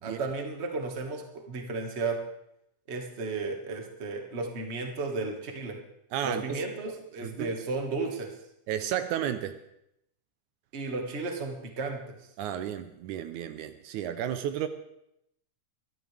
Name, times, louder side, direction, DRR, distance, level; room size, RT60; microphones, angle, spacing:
voice 1, 0.0-2.2 2.9-5.8 6.2-8.3 10.7-12.2, right 3 dB, 30° right, 1.4 m, -34 dB
voice 2, 6.1-6.4 7.2-7.5 8.7-9.6 12.4-14.7, right 10 dB, 80° right, 2.0 m, -32 dB
23.0 x 13.0 x 3.4 m
omnidirectional pair, 3.6 m